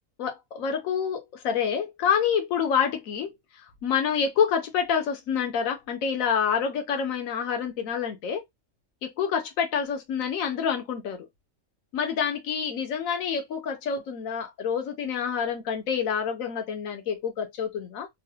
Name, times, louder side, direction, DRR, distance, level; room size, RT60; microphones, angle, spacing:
voice 1, 0.2-3.3 3.8-8.4 9.0-11.3 11.9-18.1, left 7 dB, 85° left, 1.2 m, -27 dB
3.8 x 2.0 x 2.7 m
omnidirectional pair, 1.4 m